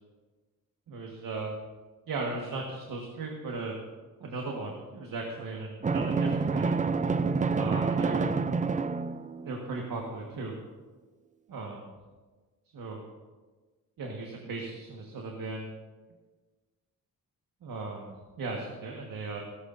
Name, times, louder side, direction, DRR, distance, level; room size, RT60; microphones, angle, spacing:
voice 1, 0.9-1.5 2.1-3.7 4.2-6.8 7.5-8.5 9.4-10.6 11.5-11.9 12.7-13.0 14.0-15.7 17.6-19.4, right 3 dB, 75° right, 0 dB, 1.6 m, -37 dB
Drum, 5.8-9.6, right 4 dB, 25° right, 0.4 m, -28 dB
16.5 x 14.5 x 2.6 m, 1.3 s
wide cardioid pair, 135°, 35 cm